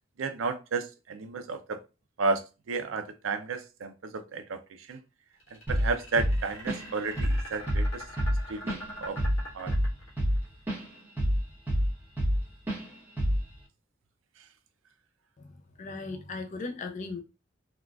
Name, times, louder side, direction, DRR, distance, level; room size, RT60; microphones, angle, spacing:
voice 1, 0.2-1.8 2.2-5.0 5.7-8.0 8.5-9.2 9.5-9.7, right 4 dB, 70° right, 0.5 m, -32 dB
sound 1, 5.4-10.4, equal, 85° left, 1.4 m, -43 dB
Drum kit / Drum, 5.7-5.9 6.2-6.9 7.2-7.4 7.7-10.8 11.2-12.4 12.7-12.8 13.2-13.5, equal, 10° right, 1.0 m, -27 dB
voice 2, 15.4-17.2, left 3 dB, 35° left, 0.4 m, -38 dB
3.6 x 2.3 x 2.3 m
head